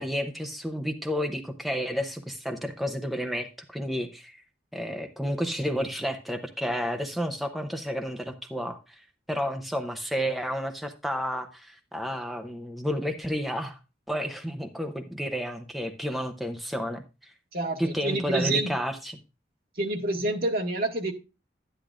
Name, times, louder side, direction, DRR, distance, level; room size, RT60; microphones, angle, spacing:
voice 1, 0.0-4.4 4.7-13.8 14.1-17.3 17.8-19.2, equal, ahead, 5 dB, 0.7 m, -31 dB
voice 2, 17.5-18.7 19.8-21.1, right 2 dB, 55° right, 2 dB, 1.7 m, -28 dB
11.5 x 10.0 x 2.5 m, 0.29 s
head